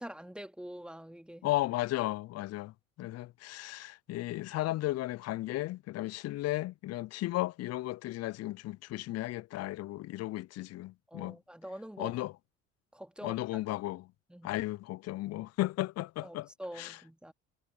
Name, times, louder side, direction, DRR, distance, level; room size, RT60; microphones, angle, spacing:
voice 1, 0.0-1.5 11.1-12.2 12.9-13.6 14.3-14.6 16.2-17.3, equal, 5° right, 2.6 m, -45 dB
voice 2, 1.4-11.4 12.0-12.3 13.2-14.1 14.4-16.5 16.8-17.0, left 17 dB, 45° left, 0.6 m, -35 dB
hypercardioid pair, 60°, 36 cm